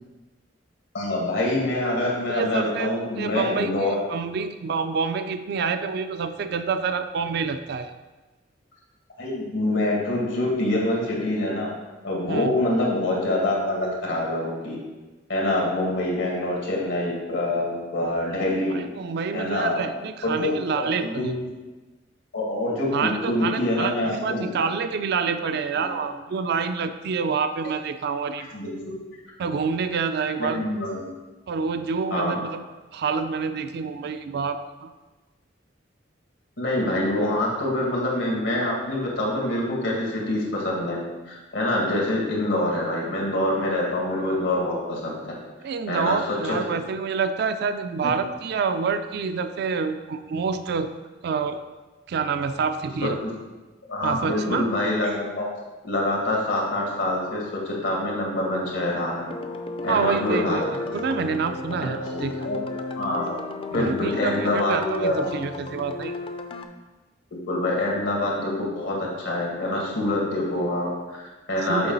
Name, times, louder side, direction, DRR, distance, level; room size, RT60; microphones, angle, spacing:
voice 1, 0.9-4.0 9.2-11.7 12.0-14.8 15.3-18.8 19.3-19.8 20.2-21.2 22.3-24.5 25.8-26.1 28.5-29.0 30.5-31.1 32.1-32.4 36.6-41.0 41.3-45.1 45.9-46.2 46.4-46.6 53.2-53.3 53.9-55.5 55.8-59.3 59.8-61.0 61.7-62.6 63.0-63.4 63.7-65.4 67.3-71.9, left 1 dB, 90° left, -3 dB, 1.9 m, -25 dB
voice 2, 2.3-7.9 12.3-12.5 18.7-21.4 22.9-28.5 29.4-30.7 31.5-32.6 32.9-34.9 45.6-50.9 51.2-51.6 52.1-53.2 54.0-54.7 59.9-60.6 60.9-62.5 63.7-66.1 71.6-71.9, right 5 dB, 60° right, 9 dB, 0.3 m, -27 dB
sound 1, 59.3-66.7, left 2 dB, 30° left, 0.4 m, -33 dB
6.8 x 4.6 x 4.0 m, 1.2 s
head